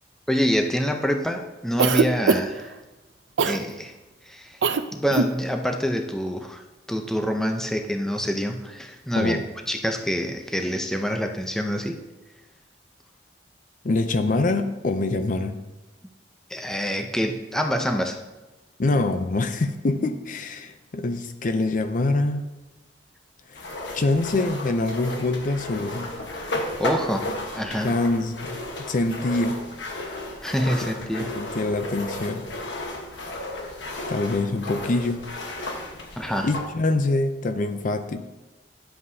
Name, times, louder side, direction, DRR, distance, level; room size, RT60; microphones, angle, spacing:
voice 1, 0.3-2.7 3.4-3.9 4.3-4.6 4.9-9.4 9.7-12.0 16.5-18.2 26.8-27.9 30.4-31.3 36.2-36.5, equal, 5° left, 4 dB, 0.6 m, -26 dB
Cough, 1.8-2.7 3.4-3.6 4.6-4.8 5.1-5.3, right 5 dB, 85° right, 0.5 m, -21 dB
voice 2, 13.8-15.6 18.8-22.4 23.5-23.6 23.9-26.2 27.8-28.6 28.9-29.7 31.2-32.5 34.1-35.3 36.4-38.3, left 2 dB, 45° left, 9 dB, 0.5 m, -25 dB
sound 1, 23.5-36.7, left 2 dB, 85° left, 1.3 m, -34 dB
11.0 x 7.6 x 2.8 m, 1.1 s
head